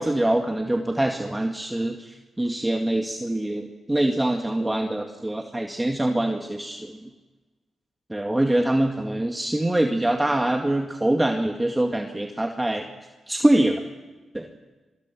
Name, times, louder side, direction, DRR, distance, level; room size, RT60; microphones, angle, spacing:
voice 1, 0.0-7.1 8.1-12.9 13.3-13.8 14.3-14.5, right 1 dB, 15° right, 3 dB, 2.1 m, -24 dB
25.5 x 23.0 x 6.2 m, 1.2 s
supercardioid pair, 45°, 0 cm